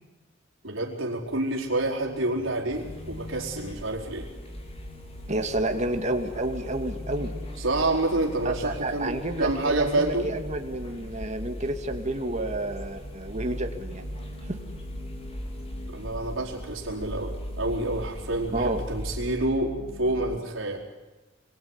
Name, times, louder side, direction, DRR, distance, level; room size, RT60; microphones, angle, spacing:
voice 1, 0.6-4.3 7.6-10.3 15.9-20.8, right 2 dB, 80° right, -1 dB, 4.6 m, -28 dB
sound 1, 1.2-20.4, equal, 55° left, 4.1 m, -41 dB
sound 2, 2.7-19.4, equal, 30° left, 4.3 m, -42 dB
voice 2, 5.3-7.3 8.4-14.0 14.4-14.6 18.5-18.8, right 1 dB, 35° right, 5 dB, 2.5 m, -30 dB
27.5 x 22.5 x 9.8 m, 1.1 s
head